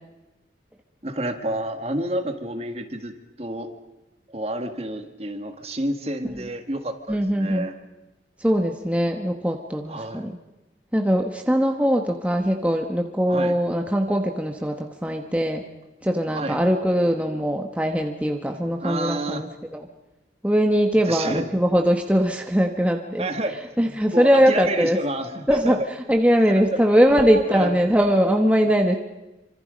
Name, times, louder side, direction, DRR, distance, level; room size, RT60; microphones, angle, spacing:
voice 1, 1.0-3.7 4.3-7.8 9.9-10.2 13.3-13.5 16.3-16.6 18.8-19.4 21.0-21.5 23.2-25.8 26.5-26.8 27.1-27.2 27.5-27.8, right 1 dB, 35° right, 7 dB, 1.8 m, -29 dB
voice 2, 7.1-7.7 8.4-10.4 10.9-15.6 16.0-19.5 20.4-23.3 23.8-25.0 25.5-25.8 26.1-29.0, equal, 10° right, 3 dB, 1.2 m, -21 dB
27.5 x 25.5 x 5.2 m, 1.0 s
head